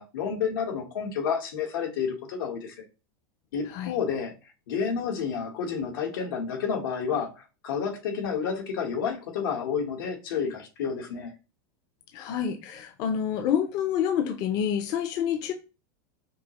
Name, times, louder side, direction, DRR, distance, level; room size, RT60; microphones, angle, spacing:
voice 1, 0.0-2.8 3.5-4.3 4.7-11.3, left 6 dB, 85° left, 1.3 m, -30 dB
voice 2, 12.1-15.5, left 8 dB, 35° left, 0.5 m, -28 dB
5.2 x 2.0 x 2.9 m
supercardioid pair, 160°, 11 cm